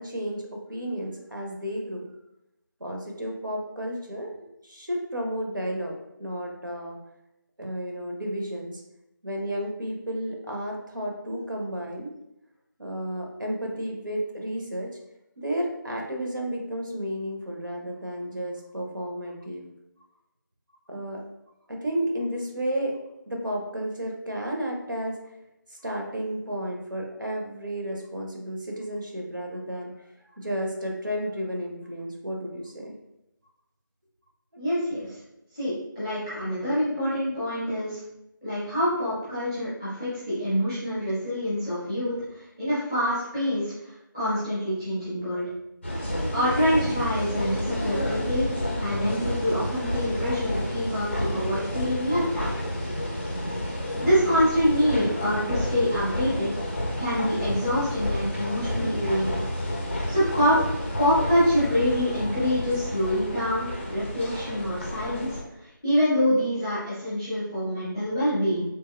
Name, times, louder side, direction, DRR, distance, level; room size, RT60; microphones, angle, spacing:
voice 1, 0.0-2.1 2.8-5.9 6.2-7.0 7.6-8.8 9.2-12.1 12.8-14.9 15.4-19.7 20.9-21.2 21.7-22.9 23.3-25.2 25.7-29.9 30.3-32.9, equal, 70° right, 0 dB, 0.8 m, -32 dB
voice 2, 34.6-35.1 35.5-38.0 38.4-45.4 46.3-48.5 48.8-52.5 54.0-56.5 57.0-59.4 60.1-60.6 61.0-65.4 65.8-68.6, equal, 5° right, -13 dB, 0.7 m, -26 dB
sound 1, 45.8-65.4, left 1 dB, 30° left, 0.5 m, -30 dB
3.3 x 2.9 x 2.3 m, 0.87 s
figure-of-eight pair, 165°, 11 cm